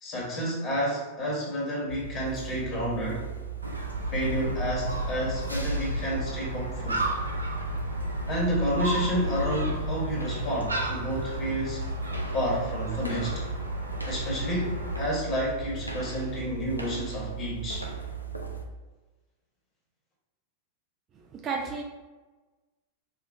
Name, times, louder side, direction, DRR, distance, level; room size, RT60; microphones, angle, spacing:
voice 1, 0.0-3.2 4.1-7.0 8.3-11.8 12.3-13.4 14.1-17.9, equal, 30° left, -4 dB, 1.5 m, -30 dB
sound 1, 1.9-18.6, right 6 dB, 90° left, 0.4 m, -37 dB
Gull seagull, 3.6-15.1, equal, 80° right, 0.5 m, -33 dB
voice 2, 21.1-21.8, right 5 dB, 30° right, 1 dB, 0.4 m, -33 dB
5.0 x 2.4 x 2.7 m, 1.2 s
figure-of-eight pair, 90°, 0 cm